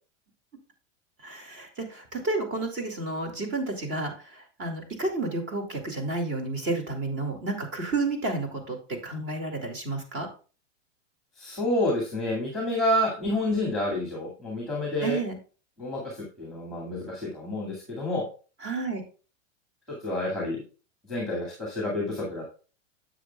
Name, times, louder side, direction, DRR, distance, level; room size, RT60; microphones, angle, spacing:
voice 1, 1.2-10.3 15.0-15.4 18.6-19.0, right 2 dB, 30° right, 3 dB, 2.2 m, -31 dB
voice 2, 11.4-15.2 15.8-18.3 19.9-20.6 21.1-22.5, left 1 dB, ahead, -2 dB, 2.1 m, -29 dB
9.8 x 7.4 x 2.3 m, 0.36 s
supercardioid pair, 150°, 37 cm